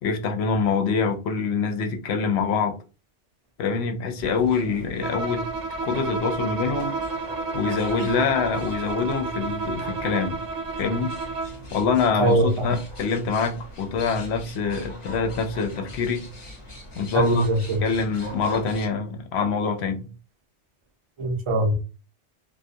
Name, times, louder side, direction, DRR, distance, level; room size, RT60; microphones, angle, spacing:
voice 1, 0.0-2.8 3.6-5.4 5.8-7.0 7.5-10.4 10.8-11.1 11.7-16.3 17.0-17.4 17.8-20.1, left 5 dB, 70° left, 0.8 m, -25 dB
sound 1, 4.2-18.9, left 1 dB, 35° left, 0.6 m, -41 dB
Bowed string instrument, 5.0-11.7, right 4 dB, 80° right, 0.9 m, -31 dB
voice 2, 12.2-12.8 17.1-17.8 21.2-21.7, right 1 dB, 45° right, 0.4 m, -21 dB
2.4 x 2.1 x 2.6 m
omnidirectional pair, 1.2 m